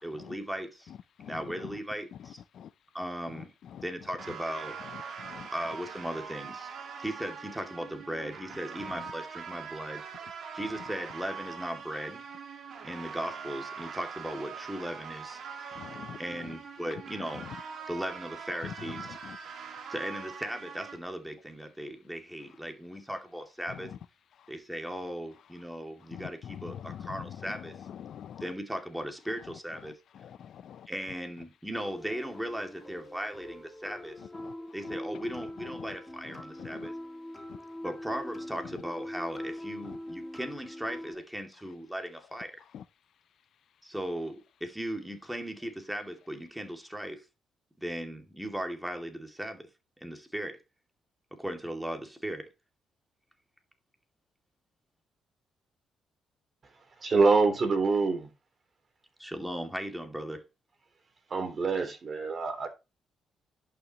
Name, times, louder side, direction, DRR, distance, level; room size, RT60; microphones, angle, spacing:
voice 1, 0.0-0.9 1.2-2.4 2.9-3.5 3.8-4.8 5.5-6.7 7.0-10.1 10.5-12.2 12.8-15.8 16.2-17.5 17.9-19.2 19.9-23.9 24.5-27.7 28.4-30.0 30.9-34.2 34.7-36.9 37.8-42.6 43.8-47.2 47.8-49.7 50.0-50.6 51.3-52.5 59.2-60.4, equal, 5° right, 2.4 m, -37 dB
voice 2, 1.2-1.7 2.5-2.7 3.4-3.8 5.2-5.5 15.7-16.2 17.4-17.5 18.6-18.7 19.0-19.4 26.1-27.5 27.9-28.4 30.2-30.9 34.4-34.5 35.7-35.9 36.3-36.9 37.5-37.6 39.9-40.0 42.7-42.8, left 9 dB, 65° left, 0.5 m, -44 dB
sound 1, 4.2-21.0, right 6 dB, 60° right, 2.0 m, -43 dB
sound 2, 31.7-41.1, left 1 dB, 10° left, 3.1 m, -42 dB
voice 3, 57.0-58.3 61.3-62.7, right 4 dB, 40° right, 3.3 m, -25 dB
11.0 x 5.9 x 3.0 m
cardioid pair, 90°, 0 cm